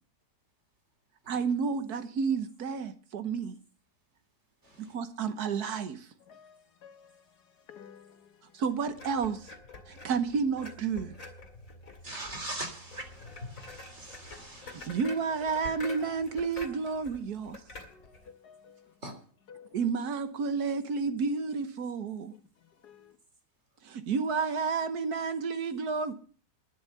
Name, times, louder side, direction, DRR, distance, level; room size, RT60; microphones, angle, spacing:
voice 1, 1.3-3.6 4.8-6.1 8.5-9.5 9.9-11.1 14.6-17.6 19.7-22.3 23.8-26.1, right 5 dB, 75° right, 1.6 m, -31 dB
voice 2, 4.6-5.0 12.0-14.9 19.0-19.2, right 2 dB, 45° right, 3.5 m, -42 dB
voice 3, 6.2-8.6 17.9-19.0 19.5-20.1 22.3-23.2, left 7 dB, 80° left, 1.8 m, -55 dB
sound 1, 8.9-18.3, left 3 dB, 60° left, 2.4 m, -47 dB
11.5 x 10.5 x 6.7 m
omnidirectional pair, 1.7 m